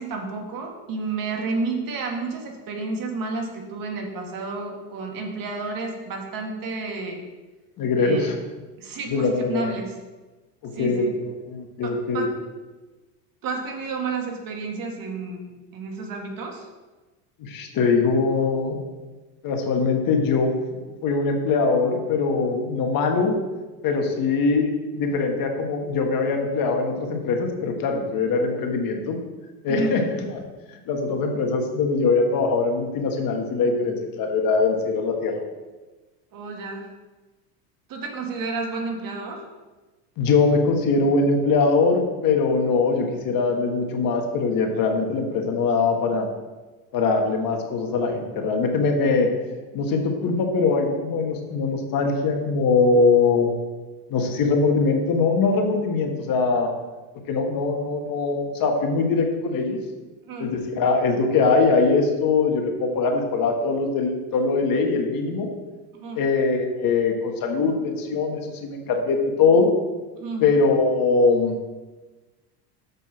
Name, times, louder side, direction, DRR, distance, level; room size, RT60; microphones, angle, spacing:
voice 1, 0.0-7.2 8.0-8.3 8.8-10.0 10.7-11.1 11.8-12.3 13.4-16.7 29.7-30.0 36.3-36.9 37.9-39.4 60.3-60.5 65.9-66.2 70.2-70.4, right 3 dB, 50° right, 1 dB, 1.8 m, -31 dB
voice 2, 7.8-8.3 9.1-9.7 10.6-12.3 17.4-18.8 19.4-20.5 21.0-23.4 23.8-29.2 29.6-30.4 30.9-35.4 40.2-46.3 46.9-49.3 49.7-53.5 54.1-56.7 57.3-59.8 60.4-65.5 66.1-69.7 70.4-71.5, left 4 dB, 50° left, 3 dB, 1.6 m, -22 dB
6.7 x 5.3 x 6.2 m, 1.2 s
supercardioid pair, 115°, 44 cm